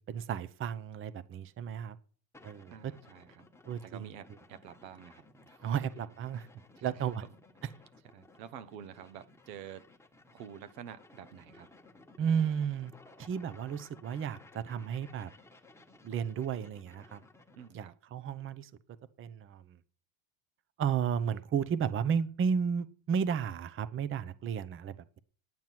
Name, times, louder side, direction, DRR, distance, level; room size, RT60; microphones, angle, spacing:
voice 1, 0.0-2.0 2.4-2.9 3.7-4.1 5.6-6.5 6.8-7.2 12.2-12.9 13.2-15.3 16.0-17.2 17.7-18.7 19.2-19.8 20.8-25.2, right 7 dB, 25° right, 15 dB, 0.7 m, -33 dB
sound 1, 2.3-17.8, left 2 dB, 5° left, 1.4 m, -58 dB
voice 2, 2.7-3.5 3.8-5.7 6.8-6.9 8.1-9.9 10.3-11.7 17.5-17.9, right 9 dB, 80° right, 12 dB, 1.2 m, -49 dB
9.3 x 9.1 x 5.9 m, 0.43 s
supercardioid pair, 115°, 49 cm